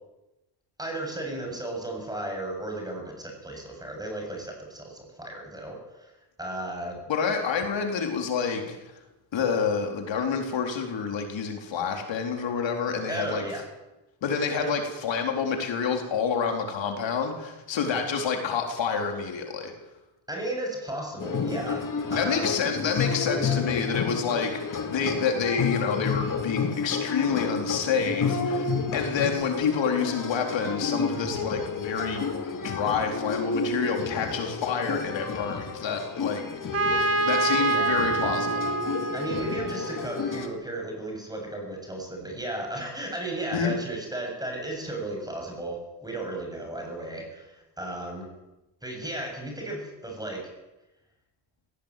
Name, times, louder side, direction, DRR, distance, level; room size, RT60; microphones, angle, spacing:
voice 1, 0.8-6.1 6.4-7.0 7.3-7.4 13.1-13.6 14.6-14.7 20.3-22.6 23.3-23.6 37.7-38.0 39.1-48.3 48.8-50.5, right 1 dB, 10° right, 2 dB, 7.5 m, -34 dB
voice 2, 7.1-8.8 9.3-13.4 14.2-19.7 22.1-36.5 37.3-38.7 43.5-43.7, left 6 dB, 75° left, 3 dB, 4.1 m, -28 dB
sound 1, 21.2-40.5, left 5 dB, 45° left, 2.6 m, -31 dB
Trumpet, 36.7-40.5, right 3 dB, 30° right, 2.4 m, -27 dB
19.5 x 18.0 x 9.2 m, 0.99 s
cardioid pair, 120°, 45 cm